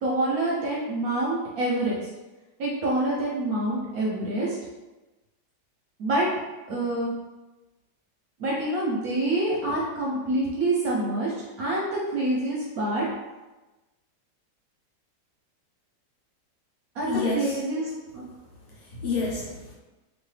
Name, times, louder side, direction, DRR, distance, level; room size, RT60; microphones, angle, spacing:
voice 1, 0.0-2.0 2.6-4.5 6.0-6.3 6.7-7.1 8.4-11.3 11.6-13.1 17.0-17.8 18.1-18.3, right 1 dB, 65° right, -4 dB, 0.9 m, -26 dB
voice 2, 17.0-18.0 18.3-18.4 18.7-19.7, left 3 dB, 65° left, -5 dB, 1.3 m, -30 dB
3.0 x 2.6 x 3.2 m, 1.1 s
omnidirectional pair, 1.9 m